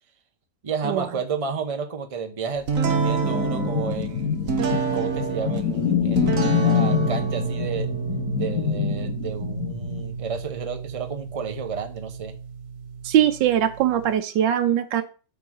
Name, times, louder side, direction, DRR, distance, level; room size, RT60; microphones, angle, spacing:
voice 1, 0.6-4.4 4.9-7.9 8.4-12.3, right 5 dB, 30° right, 6 dB, 0.7 m, -32 dB
sound 1, 2.7-14.1, right 5 dB, 50° right, 1.5 m, -29 dB
sound 2, 2.8-10.3, left 8 dB, 65° left, 1.5 m, -26 dB
voice 2, 13.0-15.0, right 10 dB, 85° right, 7 dB, 1.4 m, -21 dB
8.6 x 3.9 x 6.3 m, 0.35 s
omnidirectional pair, 1.9 m